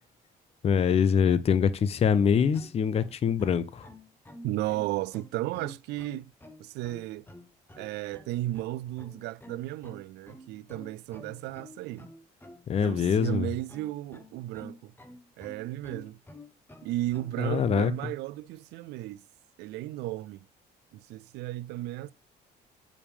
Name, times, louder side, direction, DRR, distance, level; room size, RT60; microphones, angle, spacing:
voice 1, 0.6-3.9 12.7-13.5 17.4-17.9, left 7 dB, 35° left, 0.6 m, -24 dB
sound 1, 2.1-17.7, left 1 dB, 10° left, 1.1 m, -50 dB
voice 2, 4.4-6.3 6.6-7.3 7.8-12.1 12.8-14.9 15.4-16.2 16.8-19.2 19.6-20.4 20.9-22.1, right 16 dB, 85° right, 0.4 m, -34 dB
8.5 x 5.0 x 3.5 m
cardioid pair, 110°, 17 cm